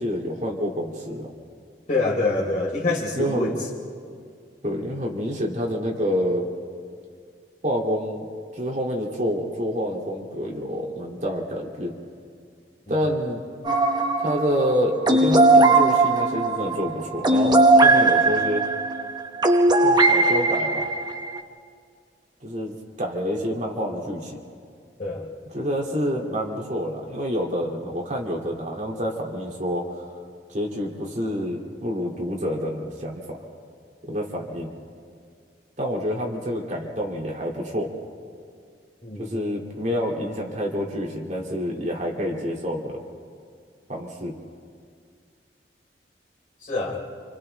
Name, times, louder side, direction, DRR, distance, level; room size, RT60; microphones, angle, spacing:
voice 1, 0.0-1.3 3.1-3.5 4.6-6.5 7.6-8.2 8.5-11.9 12.9-13.4 14.2-18.6 19.8-20.9 22.4-24.4 25.5-30.0 30.5-33.4 34.0-34.7 35.8-37.9 39.2-43.0 43.9-44.3, equal, 40° right, -1 dB, 2.5 m, -27 dB
voice 2, 1.9-3.5 12.9-13.0 25.0-25.3 39.0-39.3 46.6-47.0, left 2 dB, 45° left, -3 dB, 4.1 m, -26 dB
sound 1, 13.6-21.4, right 2 dB, 25° right, 1.0 m, -19 dB
29.5 x 27.0 x 3.3 m, 2.2 s
head